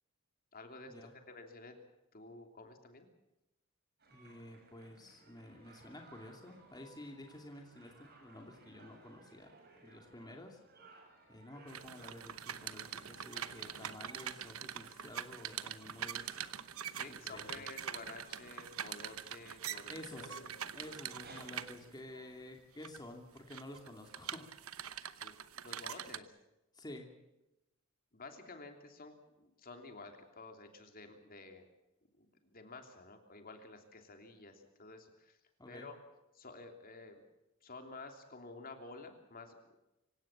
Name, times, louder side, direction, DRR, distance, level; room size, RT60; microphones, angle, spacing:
voice 1, 0.5-1.8 2.1-3.1 16.9-20.5 25.2-26.3 28.1-31.7 32.2-35.4 35.7-36.0 36.3-37.2 37.6-39.8, left 3 dB, 45° left, 5 dB, 3.0 m, -51 dB
sound 1, 4.0-22.3, right 3 dB, 50° right, 6.8 m, -61 dB
voice 2, 4.1-9.5 9.8-10.6 11.3-16.3 17.1-17.7 19.9-20.4 20.7-24.5 26.7-27.1 35.6-35.9, left 1 dB, 20° left, 2 dB, 2.6 m, -51 dB
sound 2, 11.7-22.0 22.6-23.0 23.4-26.2, right 9 dB, 85° right, 1.0 m, -44 dB
26.0 x 16.5 x 7.4 m, 0.93 s
head